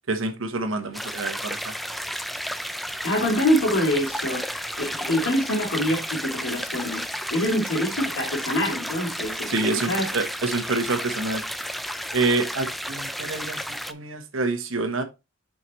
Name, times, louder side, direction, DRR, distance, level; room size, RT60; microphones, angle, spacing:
voice 1, 0.1-1.7 9.5-11.4 12.1-13.6 13.9-15.0, right 3 dB, 70° right, 1.2 m, -27 dB
sound 1, 0.9-13.9, equal, ahead, 0.3 m, -32 dB
voice 2, 3.0-10.1, equal, 75° left, 2.6 m, -25 dB
7.0 x 5.1 x 3.1 m
head